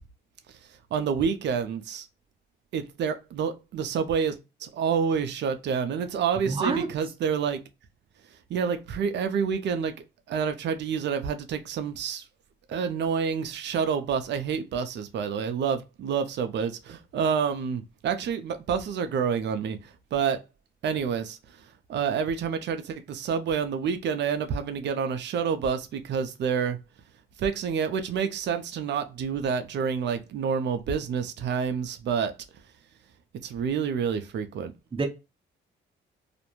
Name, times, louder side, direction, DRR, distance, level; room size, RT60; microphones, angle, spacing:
voice 1, 0.9-2.1 2.7-7.6 8.5-9.9 10.3-12.2 12.7-20.4 20.8-26.8 27.4-32.3 33.4-34.7, right 6 dB, 65° right, 0.5 m, -28 dB
voice 2, 6.5-6.9 34.9-35.1, right 4 dB, 25° right, 0.7 m, -26 dB
2.4 x 2.1 x 2.9 m
cardioid pair, 90°, 20 cm